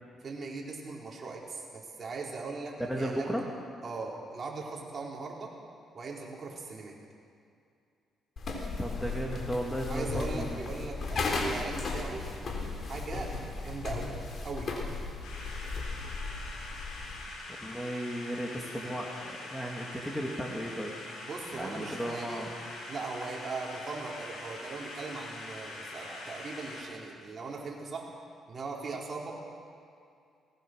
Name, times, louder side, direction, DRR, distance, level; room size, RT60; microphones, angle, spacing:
voice 1, 0.2-3.4 3.8-5.5 5.9-6.9 9.9-12.2 12.9-13.3 13.6-14.1 14.4-14.7 21.2-22.5 22.9-28.1 28.5-29.3, right 4 dB, 40° right, -3 dB, 4.8 m, -39 dB
voice 2, 2.8-3.5 8.8-10.6 17.6-21.0 21.5-22.5, equal, 5° left, -1 dB, 2.6 m, -35 dB
sound 1, 8.4-17.3, left 3 dB, 50° left, 3.7 m, -36 dB
sound 2, 15.2-26.8, left 2 dB, 90° left, 5.6 m, -43 dB
20.5 x 20.0 x 6.6 m, 2.4 s
cardioid pair, 90°, 0 cm